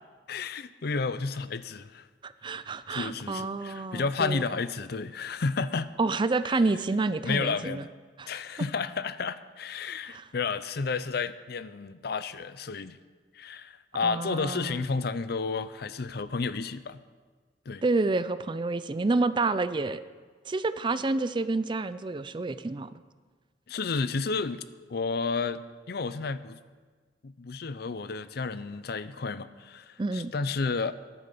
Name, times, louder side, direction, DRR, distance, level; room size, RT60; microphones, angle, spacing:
voice 1, 0.3-2.1 2.9-5.9 6.5-6.6 7.2-7.9 8.3-13.0 13.3-17.0 17.7-17.8 23.7-24.6 24.9-26.6 27.2-30.9, left 4 dB, 60° left, 14 dB, 0.6 m, -31 dB
voice 2, 2.2-4.4 6.0-7.8 8.2-8.3 10.1-10.2 14.0-14.8 17.8-20.0 20.5-22.9 30.0-30.3, right 3 dB, 25° right, 14 dB, 0.4 m, -28 dB
13.0 x 10.0 x 6.8 m, 1.4 s
head